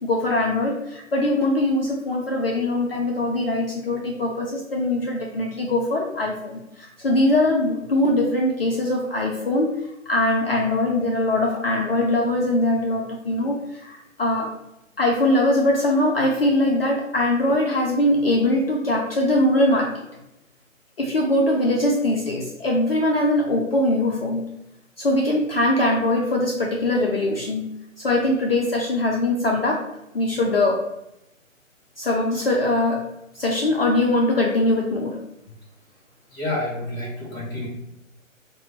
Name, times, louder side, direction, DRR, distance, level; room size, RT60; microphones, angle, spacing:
voice 1, 0.0-14.5 15.0-20.1 21.0-24.4 25.0-27.7 28.0-29.8 30.1-30.8 32.0-33.1 33.3-35.2, left 1 dB, 45° left, 0 dB, 0.5 m, -22 dB
voice 2, 36.3-37.7, left 1 dB, 5° left, -10 dB, 1.1 m, -29 dB
5.4 x 2.2 x 3.1 m, 0.87 s
figure-of-eight pair, 135°, 40 cm